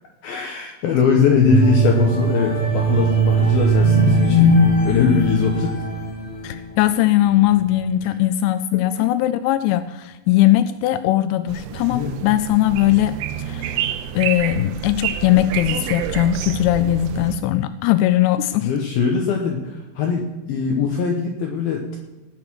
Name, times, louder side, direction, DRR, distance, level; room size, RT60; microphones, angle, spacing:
voice 1, 0.2-5.8 8.7-9.1 11.9-12.2 18.6-22.0, left 6 dB, 70° left, 2 dB, 2.3 m, -21 dB
sound 1, 1.5-6.7 7.2-7.4, right 2 dB, 35° left, 1.0 m, -18 dB
voice 2, 6.4-13.8 14.2-18.7, left 14 dB, 90° left, 13 dB, 2.5 m, -19 dB
sound 2, 11.5-17.4, right 10 dB, 85° right, 3.1 m, -28 dB
19.0 x 6.7 x 6.2 m, 1.1 s
omnidirectional pair, 5.7 m